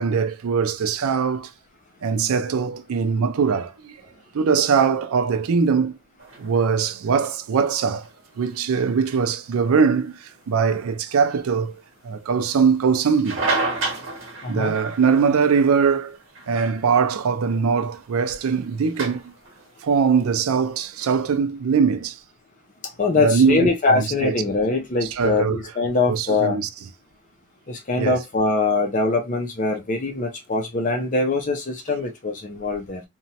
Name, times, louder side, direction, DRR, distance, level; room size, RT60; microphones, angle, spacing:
voice 1, 0.0-1.5 2.0-4.0 4.3-5.9 6.4-8.1 8.4-11.8 12.0-13.4 14.5-16.2 16.5-19.3 19.8-22.2 23.2-24.3 25.2-25.6 26.1-26.7 28.0-28.2, right 6 dB, 80° right, 0.4 m, -21 dB
sound 1, 6.2-21.3, right 3 dB, 60° right, 0.9 m, -34 dB
voice 2, 14.4-14.7 23.0-26.6 27.7-33.0, left 3 dB, 35° left, 0.5 m, -23 dB
2.9 x 2.2 x 2.7 m
head